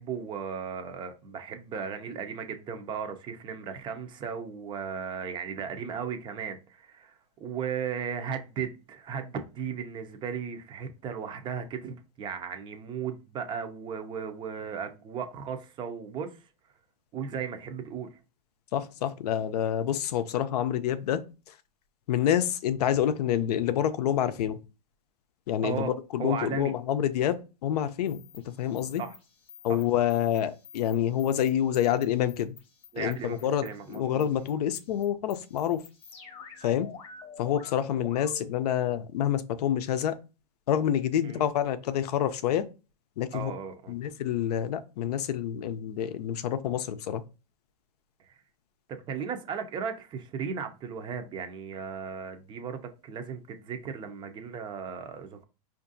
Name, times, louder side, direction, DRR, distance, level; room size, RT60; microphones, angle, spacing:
voice 1, 0.0-16.4 17.1-18.1 25.6-25.9 26.2-26.7 29.0-29.1 29.7-29.8 32.9-34.3 41.2-41.5 43.3-43.9 48.9-55.4, right 7 dB, 25° right, 0.5 m, -36 dB
voice 2, 18.7-21.2 22.1-24.6 25.5-28.2 28.6-29.0 29.6-32.5 33.0-35.8 36.6-36.9 37.4-40.2 40.7-42.7 43.2-43.5 43.9-47.2, left 10 dB, 75° left, 0.5 m, -27 dB
sound 1, 28.1-38.6, left 5 dB, 30° left, 0.9 m, -49 dB
4.5 x 2.5 x 2.6 m
supercardioid pair, 135°, 20 cm